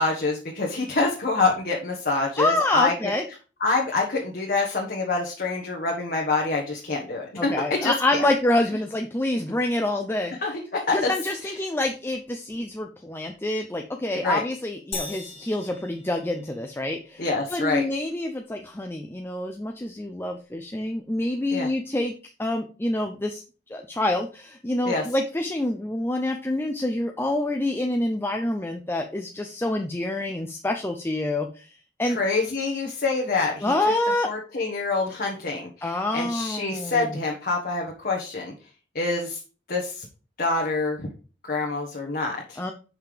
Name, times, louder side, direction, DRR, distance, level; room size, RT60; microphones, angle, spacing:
voice 1, 0.0-2.9 3.6-7.5 7.8-8.3 10.4-11.1 11.4-11.5 14.2-14.4 17.2-17.8 21.5-21.7 24.8-25.0 32.1-33.7 34.3-38.5 38.9-39.4 39.7-40.1 40.4-41.1 41.4-42.6, left 3 dB, 55° left, -1 dB, 1.4 m, -26 dB
voice 2, 2.4-3.2 7.4-10.3 10.9-17.2 17.5-22.1 22.4-23.4 23.7-32.2 33.6-34.3 35.8-37.2 42.6-42.7, left 1 dB, 15° left, 4 dB, 0.6 m, -27 dB
sound 1, 14.9-16.9, left 3 dB, 35° left, 1.5 m, -38 dB
5.8 x 5.4 x 4.9 m, 0.36 s
head